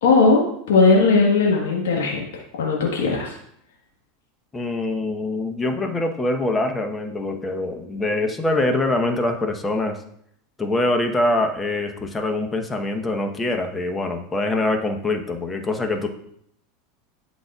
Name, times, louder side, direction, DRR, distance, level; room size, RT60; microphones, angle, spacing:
voice 1, 0.0-3.4, left 4 dB, 80° left, -2 dB, 1.4 m, -18 dB
voice 2, 4.5-10.0 10.6-16.1, left 2 dB, 20° left, 5 dB, 1.0 m, -24 dB
11.5 x 4.1 x 2.4 m, 0.70 s
hypercardioid pair, 95°, 0 cm